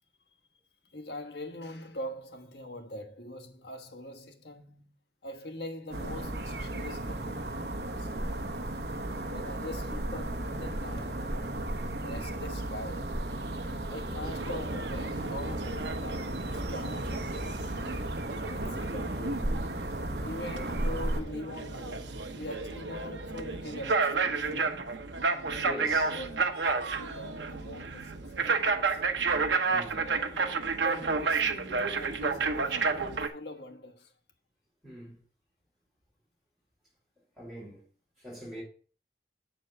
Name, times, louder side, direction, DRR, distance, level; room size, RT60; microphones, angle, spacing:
voice 1, 0.9-4.9 5.2-8.5 9.2-11.5 12.0-13.2 13.9-18.1 18.5-19.7 20.2-24.8 25.8-29.0 30.0-34.1, left 1 dB, 70° left, 1.4 m, -43 dB
sound 1, 5.9-21.2, right 1 dB, 65° right, 1.0 m, -35 dB
voice 2, 14.0-14.4 18.6-18.8 20.5-20.7 25.6-26.1 29.7-30.1 34.8-35.2 37.4-37.8 38.2-38.6, equal, 5° right, 4.8 m, -44 dB
sound 2, 14.2-33.3, right 4 dB, 90° right, 1.0 m, -31 dB
8.0 x 4.6 x 6.6 m
head